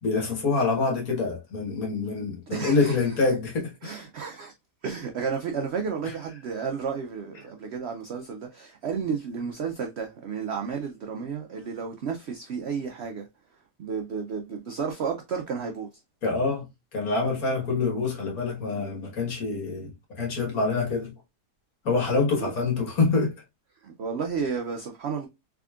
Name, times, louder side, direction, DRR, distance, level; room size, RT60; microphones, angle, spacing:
voice 1, 0.0-3.7 6.0-6.1 16.2-21.1 21.9-23.3, left 3 dB, 60° left, 1.8 m, -26 dB
voice 2, 2.5-3.0 3.8-4.5 4.8-13.3 13.8-15.9 22.4-22.5 23.8-25.3, right 6 dB, 85° right, 0.5 m, -32 dB
3.6 x 3.4 x 2.3 m
omnidirectional pair, 1.7 m